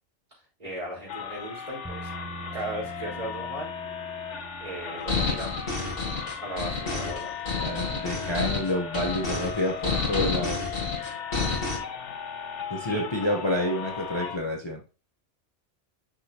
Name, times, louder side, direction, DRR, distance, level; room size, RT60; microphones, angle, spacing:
voice 1, 0.3-2.1 2.5-3.8 4.6-5.8 6.4-7.3 12.9-13.0, right 1 dB, 40° right, -5 dB, 4.5 m, -37 dB
sound 1, 1.1-14.4, left 7 dB, 80° left, 1.2 m, -37 dB
sound 2, 1.8-9.9, right 4 dB, 5° right, 0.6 m, -47 dB
sound 3, 5.1-11.8, left 4 dB, 50° left, 2.2 m, -29 dB
voice 2, 7.6-10.7 12.7-14.8, left 1 dB, 25° left, 0 dB, 0.9 m, -29 dB
6.4 x 6.2 x 2.9 m, 0.33 s
omnidirectional pair, 1.2 m